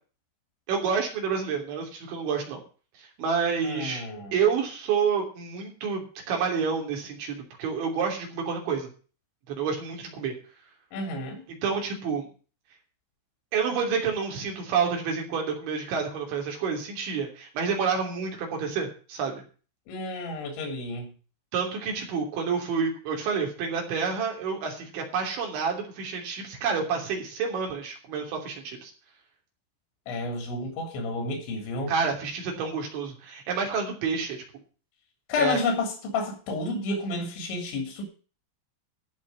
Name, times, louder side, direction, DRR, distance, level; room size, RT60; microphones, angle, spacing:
voice 1, 0.7-2.6 3.0-4.0 4.3-8.9 9.5-10.3 11.6-12.3 13.5-19.4 21.5-28.9 31.9-34.4 35.4-35.6, right 6 dB, 75° right, 2 dB, 5.5 m, -29 dB
voice 2, 3.6-4.4 10.9-11.4 19.9-21.1 30.1-31.9 35.3-38.0, left 3 dB, 75° left, 2 dB, 5.4 m, -30 dB
14.5 x 5.3 x 9.6 m, 0.38 s
omnidirectional pair, 5.3 m